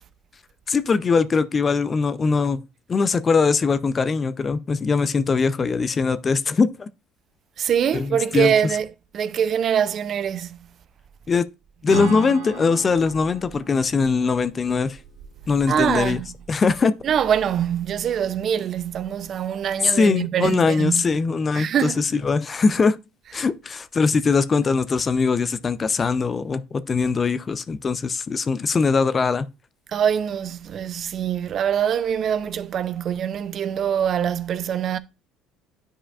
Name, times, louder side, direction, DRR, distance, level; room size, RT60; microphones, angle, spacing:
voice 1, 0.7-2.6 2.9-6.9 7.9-8.5 11.3-11.4 11.8-15.0 15.5-16.2 16.5-16.9 19.8-23.0 23.3-29.5, left 4 dB, 30° left, 0.4 m, -21 dB
voice 2, 7.6-8.9 9.1-10.6 15.7-16.3 17.0-21.0 21.5-22.0 29.9-35.0, right 8 dB, 50° right, 0.4 m, -23 dB
Acoustic guitar / Strum, 11.9-15.5, right 1 dB, 85° right, 1.5 m, -34 dB
10.0 x 4.9 x 2.4 m
supercardioid pair, 90°, 0 cm